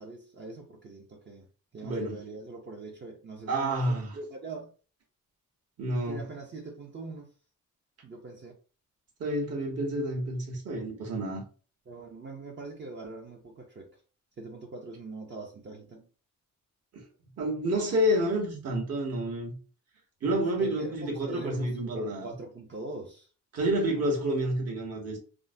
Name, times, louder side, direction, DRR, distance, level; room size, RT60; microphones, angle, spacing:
voice 1, 0.0-1.5 1.7-4.7 6.1-7.3 8.0-8.5 11.9-14.0 14.4-16.1 20.6-23.3, right 3 dB, 35° right, 0.6 m, -42 dB
voice 2, 1.8-2.2 3.5-4.1 5.8-6.2 9.2-11.4 16.9-17.0 17.4-19.6 20.2-22.3 23.5-25.2, right 1 dB, 50° right, 1.1 m, -29 dB
3.6 x 2.1 x 2.6 m
cardioid pair, 110°, 31 cm